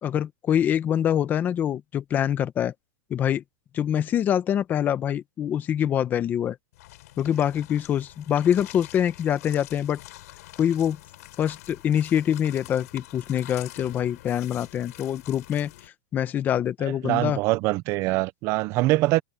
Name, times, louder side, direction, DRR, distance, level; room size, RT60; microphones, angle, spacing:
voice 1, 0.0-2.7 3.1-3.4 3.7-6.6 7.2-10.0 10.6-11.0 11.4-15.7 16.1-17.4, left 9 dB, 15° left, 1.0 m, -25 dB
sound 1, 6.7-15.9, left 17 dB, 50° left, 6.6 m, -46 dB
voice 2, 16.8-19.2, right 20 dB, 25° right, 0.5 m, -24 dB
supercardioid pair, 165°, 11 cm